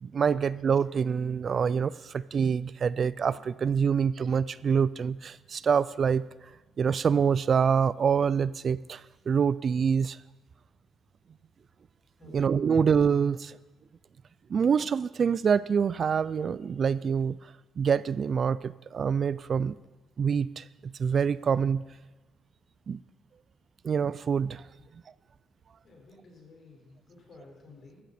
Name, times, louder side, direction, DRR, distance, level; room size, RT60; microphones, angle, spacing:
voice 1, 0.0-6.2 6.8-10.2 12.3-13.6 14.5-17.4 17.8-19.7 20.2-21.8 22.9-23.0 23.8-24.6, right 6 dB, 50° right, 19 dB, 0.3 m, -26 dB
voice 2, 12.2-12.5 24.7-24.9 25.8-28.0, left 3 dB, 50° left, 0 dB, 4.9 m, -53 dB
14.5 x 13.0 x 4.3 m, 1.2 s
cardioid pair, 90°, 0 cm